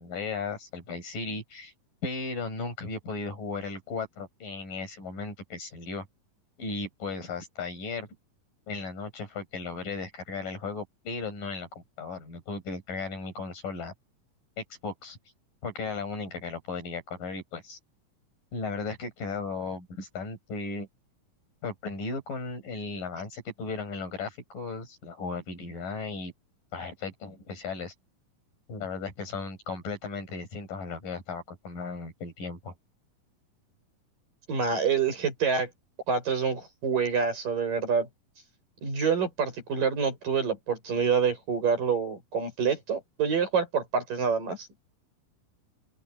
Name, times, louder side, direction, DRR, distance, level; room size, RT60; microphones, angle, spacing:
voice 1, 0.0-1.7 2.0-6.1 6.6-8.1 8.7-13.9 14.6-15.2 15.6-17.8 18.5-20.9 21.6-26.3 26.7-27.9 28.7-32.7, left 4 dB, 85° left, 9.3 m, -36 dB
voice 2, 34.5-35.7 36.1-38.1 38.8-44.7, right 6 dB, 85° right, 9.8 m, -27 dB
open air
omnidirectional pair, 3.8 m